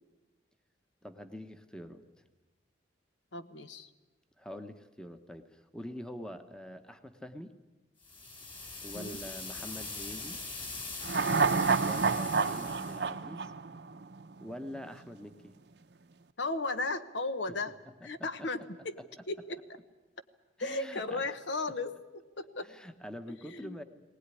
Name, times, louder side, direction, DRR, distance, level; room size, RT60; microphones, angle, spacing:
voice 1, 1.0-2.0 4.4-7.5 8.8-10.4 11.8-13.5 14.4-15.5 18.0-18.5 19.0-19.1 20.6-21.3 22.6-23.8, equal, 5° left, 8 dB, 1.0 m, -45 dB
voice 2, 3.3-3.9 8.9-9.2 16.4-17.7 18.0-18.9 19.3-19.6 20.6-22.7 23.5-23.8, left 3 dB, 75° left, 11 dB, 1.1 m, -36 dB
sound 1, 8.0-13.1, left 3 dB, 25° left, 3.5 m, -42 dB
sound 2, 11.0-14.4 14.7-14.8, right 4 dB, 65° right, 0.7 m, -29 dB
20.0 x 19.0 x 9.8 m, 1.2 s
head